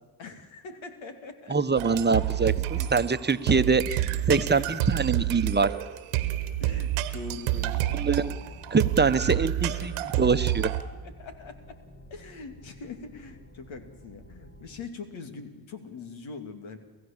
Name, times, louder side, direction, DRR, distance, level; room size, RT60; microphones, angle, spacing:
voice 1, 0.2-1.6 2.0-2.3 2.7-2.9 3.6-4.0 4.3-5.0 6.6-8.5 9.2-9.3 9.6-10.5 11.0-11.8 12.1-16.8, left 4 dB, 70° left, 7 dB, 2.6 m, -43 dB
voice 2, 1.5-3.8 4.3-5.7 8.0-8.3 8.7-10.7, right 4 dB, 20° right, 11 dB, 1.1 m, -24 dB
sound 1, 1.8-10.8, right 14 dB, 85° right, 1.3 m, -29 dB
sound 2, 6.3-14.9, equal, 30° left, 2.9 m, -51 dB
28.5 x 15.0 x 7.4 m, 1.3 s
supercardioid pair, 55°, 48 cm